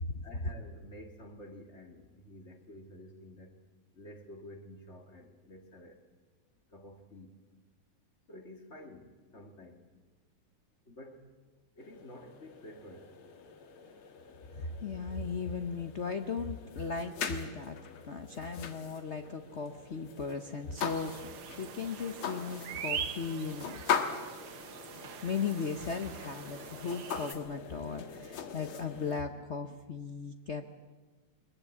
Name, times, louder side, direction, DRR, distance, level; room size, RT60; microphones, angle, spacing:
voice 1, 0.2-3.6 3.9-6.1 6.7-7.4 8.3-9.9 10.9-11.4 11.8-13.2, left 1 dB, 35° left, 5 dB, 2.4 m, -50 dB
sound 1, 11.8-29.2, left 7 dB, 90° left, 2.4 m, -41 dB
voice 2, 14.5-23.8 25.0-30.7, left 5 dB, 50° left, 7 dB, 0.9 m, -37 dB
sound 2, 20.8-27.3, right 8 dB, 70° right, 1.9 m, -43 dB
22.0 x 21.5 x 8.5 m, 1.3 s
omnidirectional pair, 2.3 m